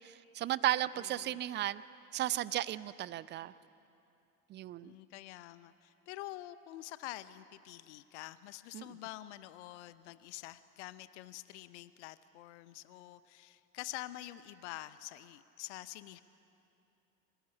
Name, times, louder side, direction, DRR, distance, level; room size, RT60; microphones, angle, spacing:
voice 1, 0.0-1.8 2.1-3.5 4.5-4.9 8.7-8.9, right 13 dB, 25° right, 18 dB, 0.5 m, -34 dB
voice 2, 0.9-1.4 4.8-16.2, left 16 dB, 55° left, 15 dB, 0.8 m, -47 dB
25.0 x 15.0 x 9.9 m, 2.8 s
figure-of-eight pair, 75°, 42 cm